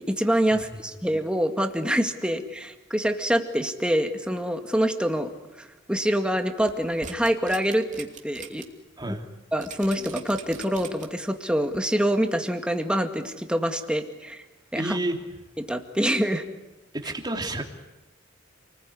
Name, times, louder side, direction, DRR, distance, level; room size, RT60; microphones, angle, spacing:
voice 1, 0.1-5.3 5.6-8.6 9.1-9.2 9.5-14.4 14.7-15.0 15.7-16.4, equal, 5° right, 5 dB, 2.1 m, -25 dB
sound 1, 6.6-8.6 9.0-9.1 9.6-11.3 11.7-11.8, right 6 dB, 40° right, 2.8 m, -42 dB
voice 2, 14.8-15.2 16.9-17.6, right 1 dB, 20° right, 3 dB, 3.0 m, -29 dB
29.0 x 20.5 x 9.8 m, 1.1 s
head